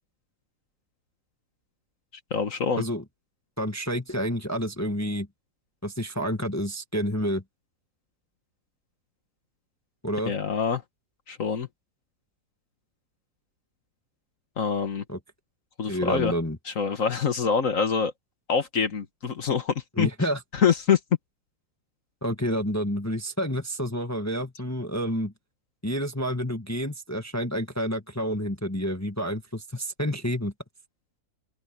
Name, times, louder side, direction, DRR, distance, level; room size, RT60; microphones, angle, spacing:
voice 1, 2.3-2.8 10.3-10.8 11.3-11.7 14.6-15.0 15.8-16.3 16.7-18.1 18.5-20.1 20.5-21.0, left 6 dB, 50° left, 1.7 m, -25 dB
voice 2, 3.6-5.3 5.8-7.4 10.0-10.3 15.1-15.2 15.9-16.6 20.0-20.4 22.2-25.3 25.8-30.5, equal, 10° left, 1.4 m, -29 dB
open air
omnidirectional pair, 1.8 m